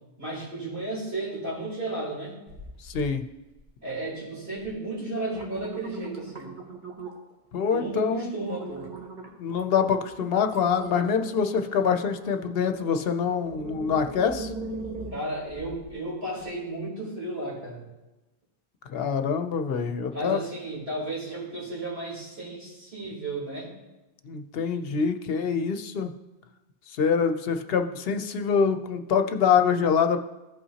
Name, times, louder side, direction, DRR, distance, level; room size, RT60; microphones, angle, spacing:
voice 1, 0.2-2.4 3.8-6.6 7.7-8.9 15.1-17.8 20.1-23.7, right 2 dB, 75° right, -6 dB, 3.8 m, -33 dB
sound 1, 2.5-3.1 3.5-4.0 4.6-4.7 5.1-7.3 7.8-8.0 8.4-15.9 16.4-16.5, right 3 dB, 50° right, 1.3 m, -41 dB
voice 2, 2.8-3.2 7.5-8.5 9.4-14.5 18.9-20.4 24.2-26.1 26.9-30.2, left 6 dB, 70° left, 7 dB, 0.8 m, -25 dB
15.5 x 5.6 x 2.8 m, 1.0 s
omnidirectional pair, 1.0 m